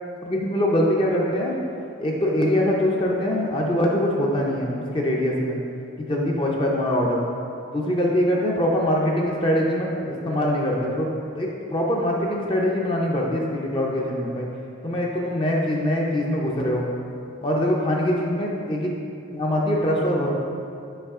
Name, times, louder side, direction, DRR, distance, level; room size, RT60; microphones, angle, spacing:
voice 1, 0.2-1.6 2.0-5.6 6.0-7.2 7.7-14.5 14.8-16.8 17.4-18.9 19.3-20.3, left 1 dB, 25° left, -2 dB, 0.5 m, -23 dB
5.5 x 5.0 x 3.6 m, 2.6 s
head